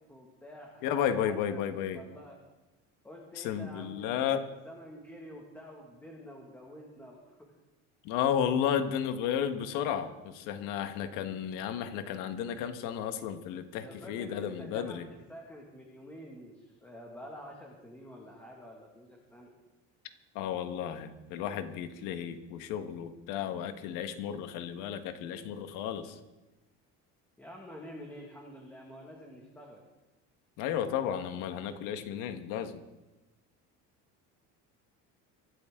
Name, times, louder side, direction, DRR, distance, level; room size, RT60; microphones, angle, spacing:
voice 1, 0.0-1.6 1.9-2.4 3.0-7.3 13.8-15.0 15.3-19.5 27.4-29.8, equal, 5° left, -1 dB, 2.0 m, -48 dB
voice 2, 0.8-2.0 3.4-4.4 8.0-15.1 20.3-26.2 30.6-32.8, left 9 dB, 75° left, 8 dB, 1.6 m, -33 dB
24.5 x 13.0 x 3.8 m, 1.1 s
cardioid pair, 165°, 32 cm